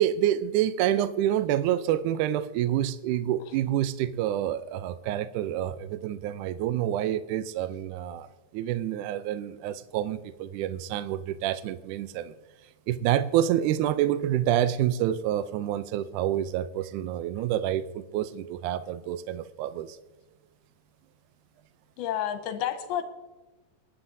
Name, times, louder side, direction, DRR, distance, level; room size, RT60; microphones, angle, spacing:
voice 1, 0.0-12.3 12.9-20.0, right 11 dB, 90° right, 12 dB, 1.7 m, -28 dB
voice 2, 22.0-23.0, left 10 dB, 85° left, 7 dB, 2.9 m, -30 dB
26.5 x 9.9 x 2.7 m, 1.1 s
omnidirectional pair, 4.3 m